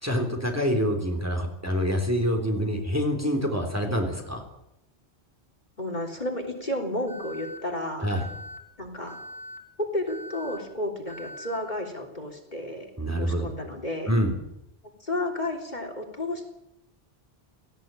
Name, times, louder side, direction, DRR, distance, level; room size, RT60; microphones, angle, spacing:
voice 1, 0.0-4.4 8.0-8.3 13.0-13.5 14.1-14.4, equal, 15° right, 3 dB, 3.4 m, -26 dB
voice 2, 5.8-8.1 8.8-9.2 9.8-12.9 13.1-14.1 15.0-16.5, left 1 dB, 40° left, 3 dB, 3.6 m, -32 dB
Alarm, 7.1-7.6 8.1-8.6 9.1-9.6 10.1-10.6 11.1-11.6, left 1 dB, 20° left, 3.8 m, -41 dB
18.0 x 17.0 x 9.0 m, 0.85 s
omnidirectional pair, 1.1 m